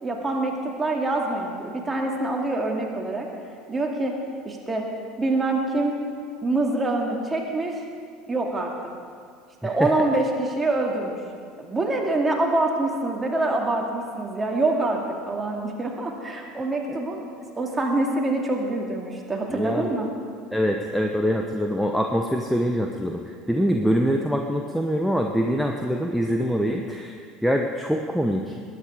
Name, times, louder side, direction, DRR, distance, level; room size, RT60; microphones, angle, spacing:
voice 1, 0.0-3.3 3.7-4.2 4.4-4.9 5.2-6.0 6.4-7.8 8.3-8.7 9.6-11.2 11.6-15.0 15.3-17.2 17.6-20.1, right 2 dB, 20° right, 0 dB, 2.5 m, -25 dB
voice 2, 19.5-19.9 20.5-23.2 23.5-28.6, equal, ahead, 2 dB, 1.0 m, -24 dB
20.0 x 9.7 x 5.0 m, 2.1 s
figure-of-eight pair, 70°, 0 cm